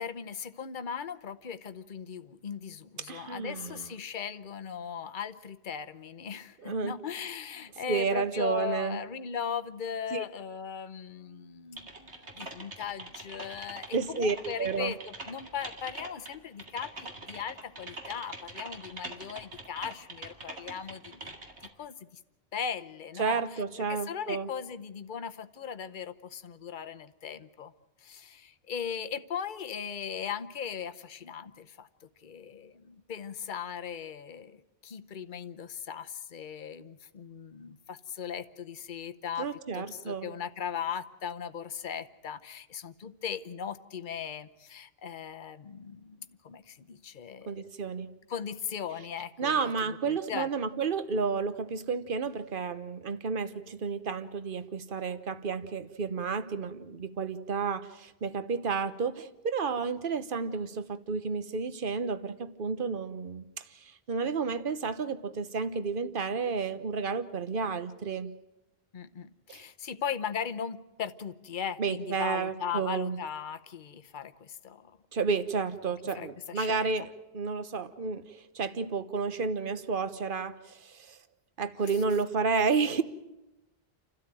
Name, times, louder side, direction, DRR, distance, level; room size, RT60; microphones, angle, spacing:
voice 1, 0.0-21.3 21.8-22.0 22.5-23.6 23.9-27.7 28.0-39.5 39.7-47.6 48.3-50.5 68.9-75.0 76.1-76.9, left 7 dB, 50° left, 11 dB, 1.0 m, -38 dB
voice 2, 3.1-3.9 6.6-6.9 7.9-9.0 10.1-10.2 13.9-14.9 23.2-24.5 39.4-40.3 47.5-48.1 49.4-68.3 69.5-69.6 71.8-73.2 75.1-81.2 81.6-83.0, right 5 dB, 55° right, 12 dB, 1.2 m, -31 dB
Typing, 11.8-21.7, right 2 dB, 90° right, 2.6 m, -44 dB
30.0 x 13.0 x 9.1 m, 0.96 s
omnidirectional pair, 1.1 m